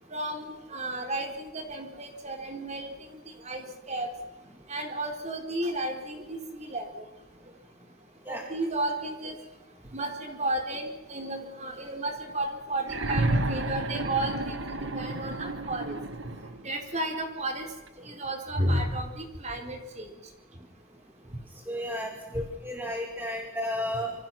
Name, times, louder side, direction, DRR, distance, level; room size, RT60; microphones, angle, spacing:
voice 1, 0.1-2.9 3.4-4.1 4.7-7.0 8.3-9.4 9.9-16.0 16.6-17.7 18.2-20.0, right 1 dB, 30° right, 4 dB, 4.2 m, -33 dB
sound 1, 12.8-16.7 17.9-18.0, right 2 dB, 55° right, 1.8 m, -31 dB
voice 2, 21.7-24.1, left 1 dB, 10° right, 2 dB, 2.2 m, -33 dB
26.5 x 25.0 x 6.0 m, 1.1 s
head